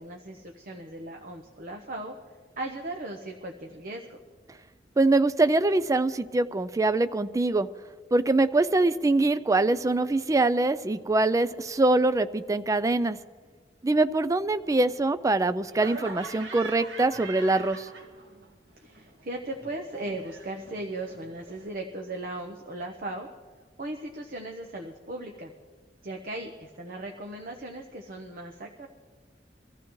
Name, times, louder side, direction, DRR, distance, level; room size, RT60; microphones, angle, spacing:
voice 1, 0.0-2.1 2.6-4.2 18.8-23.3 23.8-25.5 26.0-28.9, right 2 dB, 55° right, 3 dB, 0.9 m, -37 dB
voice 2, 5.0-7.7 8.1-13.2 13.8-17.9, right 2 dB, 20° right, 13 dB, 0.4 m, -23 dB
Laughter, 15.7-18.5 18.8-21.7, right 4 dB, 85° right, 2.1 m, -43 dB
24.0 x 14.5 x 3.1 m, 1.5 s
head